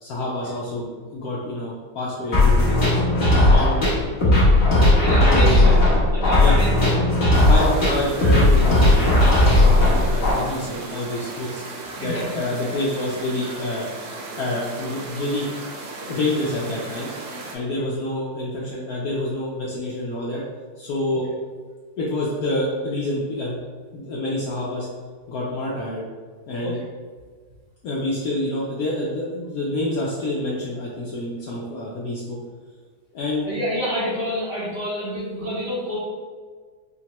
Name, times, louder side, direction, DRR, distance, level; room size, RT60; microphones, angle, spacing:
voice 1, 0.0-2.9 3.5-3.8 5.1-5.9 6.4-6.6 7.5-11.6 12.0-13.9 14.4-15.5 16.1-17.1 17.5-20.4 20.8-21.3 22.0-23.6 23.9-24.9 25.3-26.0 26.5-26.8 27.8-32.4 33.1-33.5, left 1 dB, 70° left, -5 dB, 0.9 m, -27 dB
sound 1, 2.3-10.3, left 1 dB, 40° left, 1.1 m, -16 dB
voice 2, 4.9-5.8 6.1-7.0 12.0-12.4 17.7-17.8 26.6-26.7 33.4-36.0, equal, 45° right, -10 dB, 0.9 m, -28 dB
sound 2, 7.3-17.6, right 3 dB, 75° right, 1.1 m, -36 dB
5.1 x 2.1 x 2.9 m, 1.5 s
omnidirectional pair, 2.0 m